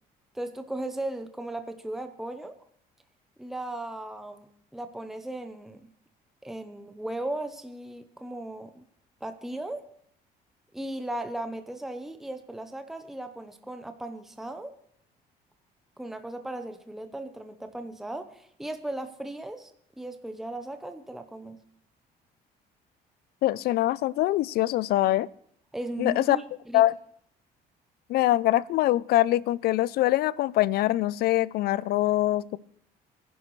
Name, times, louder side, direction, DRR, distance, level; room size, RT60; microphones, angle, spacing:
voice 1, 0.3-2.6 3.4-5.9 6.4-8.8 9.2-9.9 10.7-14.7 16.0-21.6 25.7-26.8, right 1 dB, ahead, 7 dB, 0.8 m, -37 dB
voice 2, 23.4-25.3 26.0-26.4 26.7-26.9 28.1-32.6, left 15 dB, 70° left, 22 dB, 0.4 m, -23 dB
21.0 x 11.0 x 3.2 m, 0.68 s
cardioid pair, 110°, 17 cm